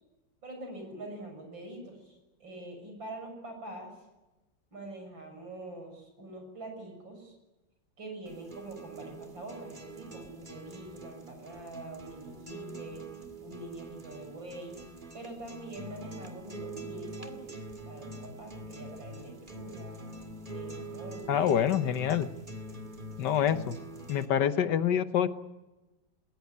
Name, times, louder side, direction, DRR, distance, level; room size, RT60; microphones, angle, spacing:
voice 1, 0.4-3.9 4.7-7.4 8.0-13.0 13.4-14.8 15.1-17.6 17.9-20.0 20.5-21.7, right 2 dB, 85° right, 4 dB, 7.3 m, -44 dB
sound 1, 8.3-24.3, right 2 dB, 25° right, 2.2 m, -44 dB
voice 2, 21.3-22.3 23.2-23.8 24.1-25.3, left 9 dB, 70° left, 12 dB, 1.6 m, -26 dB
20.5 x 19.0 x 9.5 m, 1.1 s
omnidirectional pair, 2.0 m